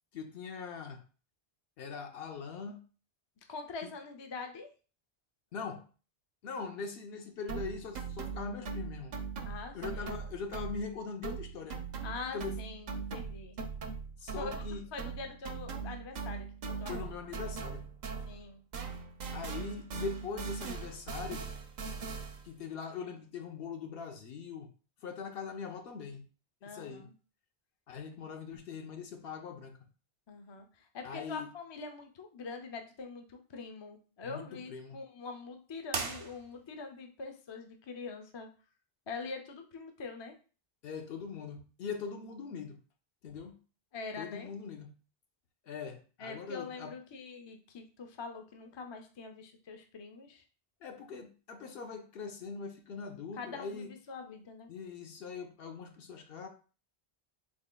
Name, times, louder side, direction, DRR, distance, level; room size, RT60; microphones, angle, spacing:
voice 1, 0.1-1.0 1.8-2.8 5.5-5.8 6.4-9.2 9.7-11.8 12.3-12.5 14.2-14.8 16.9-17.8 19.3-21.5 22.4-24.7 25.0-26.3 26.6-27.1 27.9-29.8 31.0-31.5 34.2-35.0 40.8-42.8 43.2-43.6 44.2-44.9 45.7-46.9 50.8-53.9 54.7-56.5, left 5 dB, 70° left, 0.8 m, -41 dB
voice 2, 3.5-4.7 9.4-10.1 12.0-13.6 14.4-16.9 17.4-17.6 18.3-18.6 21.9-22.1 26.6-27.1 30.3-38.5 39.1-40.4 43.9-44.5 46.2-50.4 53.4-54.7, left 4 dB, 40° left, 0.4 m, -44 dB
sound 1, 7.5-11.0 11.2-18.5 18.7-22.5, right 5 dB, 55° right, 0.5 m, -40 dB
sound 2, 35.9-36.9, right 4 dB, 90° right, 0.9 m, -38 dB
3.6 x 3.6 x 2.2 m
omnidirectional pair, 1.0 m